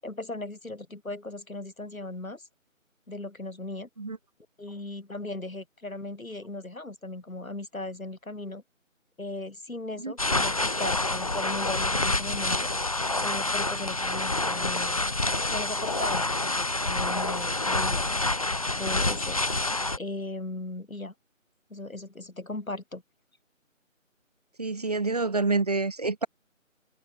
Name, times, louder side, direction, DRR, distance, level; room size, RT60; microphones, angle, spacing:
voice 1, 0.0-2.5 3.1-3.9 4.6-8.6 9.2-12.7 13.2-15.1 15.5-18.2 18.7-19.5 19.9-21.1 21.7-23.0, left 2 dB, 85° left, 7.9 m, -37 dB
sound 1, 10.2-20.0, left 2 dB, 25° left, 1.2 m, -27 dB
voice 2, 24.6-26.3, right 3 dB, 30° right, 1.9 m, -27 dB
figure-of-eight pair, 170°, 40 cm